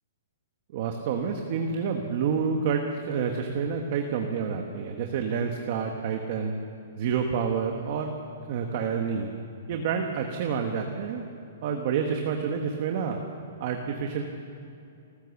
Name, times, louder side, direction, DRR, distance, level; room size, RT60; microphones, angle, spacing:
voice 1, 0.7-6.5 7.0-8.1 8.5-9.3 9.7-11.2 11.6-13.2 13.6-14.2, right 6 dB, 30° right, 3 dB, 1.2 m, -28 dB
29.0 x 15.0 x 7.1 m, 2.6 s
hypercardioid pair, 180°, 0 cm